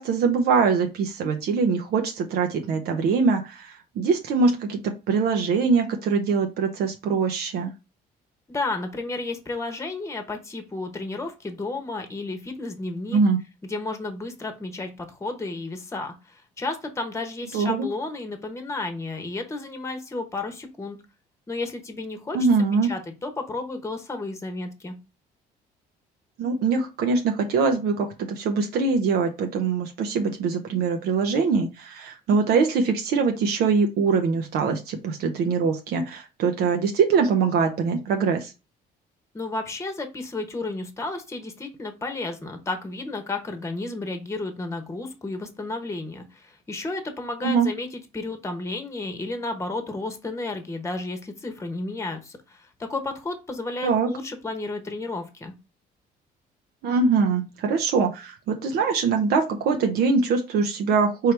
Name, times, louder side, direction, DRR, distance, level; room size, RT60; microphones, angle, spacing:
voice 1, 0.0-7.7 13.1-13.4 17.5-17.9 22.3-22.9 26.4-38.5 47.4-47.7 53.8-54.1 56.8-61.3, right 5 dB, 70° right, 4 dB, 0.7 m, -23 dB
voice 2, 8.5-13.2 13.6-21.0 21.5-22.4 22.8-24.9 39.3-55.5, left 2 dB, 15° left, 6 dB, 1.0 m, -32 dB
4.7 x 3.1 x 3.3 m, 0.28 s
cardioid pair, 110°, 17 cm